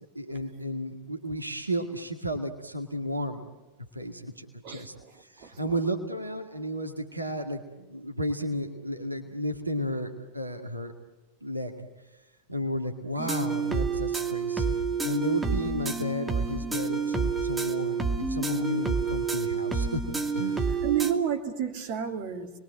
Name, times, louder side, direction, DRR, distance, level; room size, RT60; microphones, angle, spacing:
voice 1, 0.1-3.5 3.9-10.9 11.4-11.7 12.5-20.0 20.3-20.8, equal, 85° right, 4 dB, 2.1 m, -33 dB
voice 2, 4.6-5.1 5.4-5.6 18.4-18.6 20.8-22.5, right 9 dB, 45° right, 4 dB, 3.0 m, -31 dB
sound 1, 13.2-21.1, right 5 dB, 10° right, 2.3 m, -29 dB
28.5 x 21.5 x 7.7 m, 1.1 s
figure-of-eight pair, 90°, 0 cm